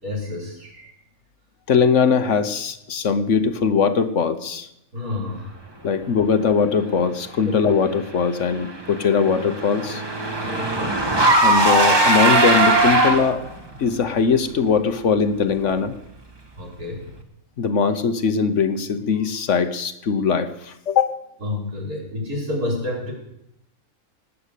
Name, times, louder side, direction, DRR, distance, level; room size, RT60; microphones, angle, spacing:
voice 1, 0.0-0.9 4.9-5.6 7.4-7.6 10.4-11.1 16.6-17.1 21.4-23.1, left 2 dB, 90° right, -2 dB, 5.3 m, -30 dB
voice 2, 1.7-4.7 5.8-10.0 11.4-13.4 13.8-16.0 17.6-21.2, left 6 dB, 60° left, 11 dB, 1.3 m, -20 dB
Car / Engine, 8.5-13.5, right 2 dB, 15° right, 1.6 m, -19 dB
19.5 x 8.5 x 8.4 m, 0.81 s
omnidirectional pair, 1.5 m